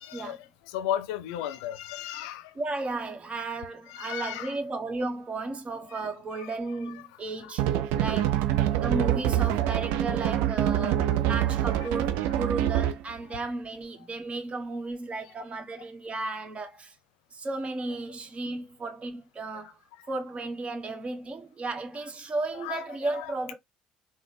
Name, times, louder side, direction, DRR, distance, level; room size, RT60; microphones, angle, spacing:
voice 1, 0.0-2.5 3.9-4.6 5.9-6.1 6.3-6.5 8.1-8.2 9.0-9.1 10.8-11.2 20.0-20.1 22.5-23.3, left 11 dB, 75° left, 0.4 m, -35 dB
voice 2, 2.5-7.7 8.0-8.4 8.8-16.9 17.3-19.8 20.1-23.5, right 3 dB, 35° right, 1.1 m, -34 dB
sound 1, 7.6-13.1, right 12 dB, 70° right, 0.4 m, -25 dB
3.9 x 2.1 x 3.3 m
hypercardioid pair, 55°, 4 cm